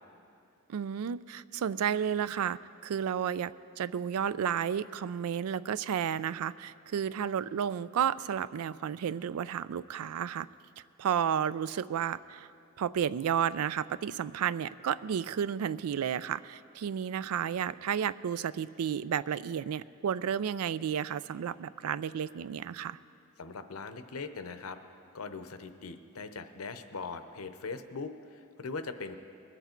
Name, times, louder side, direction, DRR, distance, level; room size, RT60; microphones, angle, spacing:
voice 1, 0.7-3.5 3.8-10.5 11.0-12.5 12.8-23.0, right 8 dB, 85° right, 17 dB, 0.4 m, -32 dB
voice 2, 23.4-24.8 25.1-29.2, left 4 dB, 85° left, 9 dB, 0.7 m, -40 dB
21.5 x 8.1 x 4.4 m, 2.6 s
head